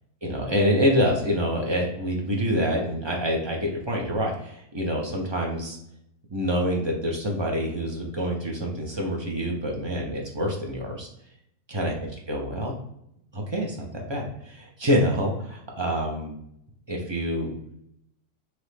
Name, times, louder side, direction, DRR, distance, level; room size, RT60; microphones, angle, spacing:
voice 1, 0.2-5.8 6.3-11.1 11.7-11.9 12.3-12.8 13.3-16.4 16.9-17.5, equal, 30° right, -1 dB, 0.5 m, -26 dB
4.3 x 3.0 x 3.3 m, 0.75 s
omnidirectional pair, 1.7 m